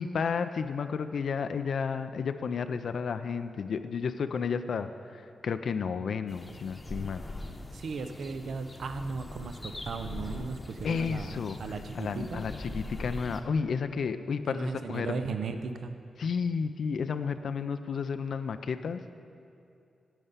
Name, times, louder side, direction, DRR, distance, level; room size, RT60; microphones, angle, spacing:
voice 1, 0.0-7.2 10.8-15.2 16.2-19.2, left 6 dB, 70° left, 10 dB, 0.4 m, -32 dB
sound 1, 6.3-13.4, left 1 dB, 20° left, 0.8 m, -41 dB
voice 2, 7.7-12.4 14.5-16.0, right 4 dB, 75° right, 8 dB, 0.5 m, -36 dB
9.1 x 5.5 x 8.0 m, 2.6 s
cardioid pair, 90°, 0 cm